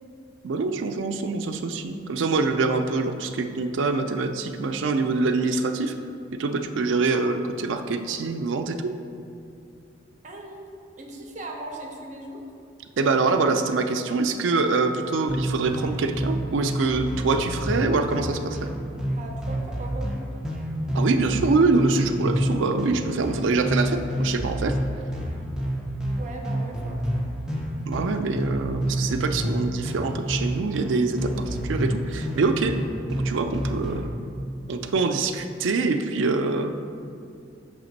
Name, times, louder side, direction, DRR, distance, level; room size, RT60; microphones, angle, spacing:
voice 1, 0.4-5.9 6.4-8.9 13.0-18.7 20.9-24.8 27.9-32.7 33.1-34.1 34.7-36.7, right 3 dB, 85° right, 7 dB, 0.4 m, -25 dB
voice 2, 10.2-10.7 11.0-12.4 19.1-20.2 26.2-27.4, right 2 dB, 40° right, 1 dB, 0.7 m, -38 dB
sound 1, 15.3-34.1, equal, 5° right, 0.7 m, -29 dB
5.8 x 3.5 x 5.2 m, 2.6 s
head